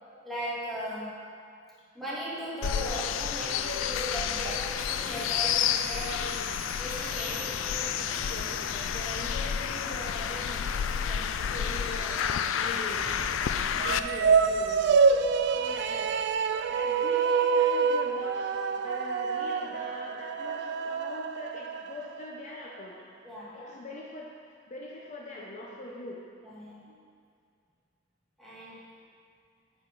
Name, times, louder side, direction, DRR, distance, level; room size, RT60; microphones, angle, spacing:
voice 1, 0.2-1.2 1.9-6.5 6.8-8.1 11.0-11.4 23.2-23.6 26.4-26.8 28.4-28.8, equal, ahead, -8 dB, 1.9 m, -38 dB
sound 1, 2.6-14.0, left 8 dB, 80° left, 0.3 m, -30 dB
sound 2, 4.7-18.1, right 1 dB, 40° right, 1.2 m, -46 dB
voice 2, 8.2-10.7 11.4-13.0 13.8-15.0 15.5-16.1 16.7-18.5 18.8-23.1 23.5-24.3 24.7-26.2 26.9-27.0, left 1 dB, 40° left, -3 dB, 0.7 m, -42 dB
sound 3, 13.7-22.2, right 5 dB, 60° right, 0.3 m, -26 dB
8.8 x 4.4 x 5.3 m, 2.3 s
head